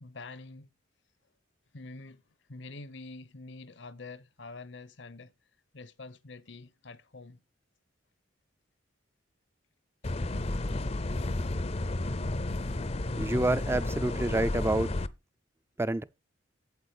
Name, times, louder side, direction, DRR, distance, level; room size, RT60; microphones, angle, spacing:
voice 1, 0.0-0.7 1.7-2.2 2.5-5.3 5.7-7.4, left 3 dB, 65° left, 0.8 m, -46 dB
sound 1, 10.0-15.1, left 2 dB, 30° left, 0.6 m, -32 dB
voice 2, 13.2-14.9 15.8-16.0, right 1 dB, 15° right, 0.5 m, -28 dB
8.2 x 8.1 x 4.9 m
head